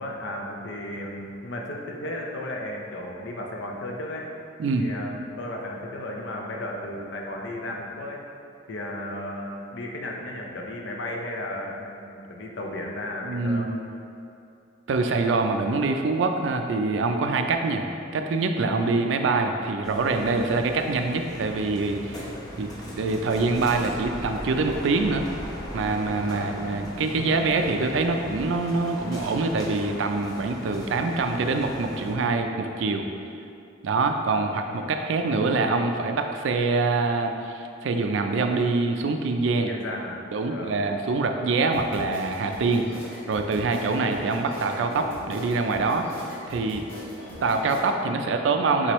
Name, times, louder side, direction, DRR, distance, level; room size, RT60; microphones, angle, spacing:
voice 1, 0.0-4.3 4.8-8.2 8.7-13.7 26.3-26.5 39.7-40.2 40.5-40.8, left 1 dB, 65° left, 0 dB, 0.6 m, -34 dB
voice 2, 13.2-13.8 14.9-17.9 18.1-22.3 22.6-25.3 25.7-33.1 33.8-39.7 40.3-42.9 43.3-46.1 46.5-46.8 47.4-48.9, right 3 dB, 70° right, 5 dB, 0.4 m, -25 dB
sound 1, 19.8-32.1, equal, 20° left, 0.8 m, -38 dB
sound 2, 41.7-47.8, equal, 90° left, 1.4 m, -40 dB
4.4 x 3.9 x 3.0 m, 2.5 s
head